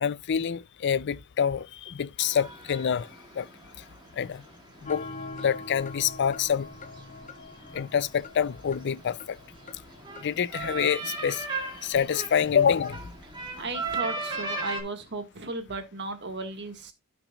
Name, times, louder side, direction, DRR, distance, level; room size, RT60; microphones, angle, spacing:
voice 1, 0.0-3.1 3.4-3.5 4.2-4.4 4.8-5.0 5.4-6.7 7.7-9.4 10.2-11.4 11.8-13.0, left 7 dB, 55° left, 0.4 m, -26 dB
sound 1, 2.2-14.8, right 3 dB, 20° right, 2.3 m, -39 dB
sound 2, 4.9-10.9, left 3 dB, 35° left, 0.9 m, -43 dB
voice 2, 13.6-16.9, right 3 dB, 55° right, 1.7 m, -35 dB
15.5 x 6.0 x 2.3 m
head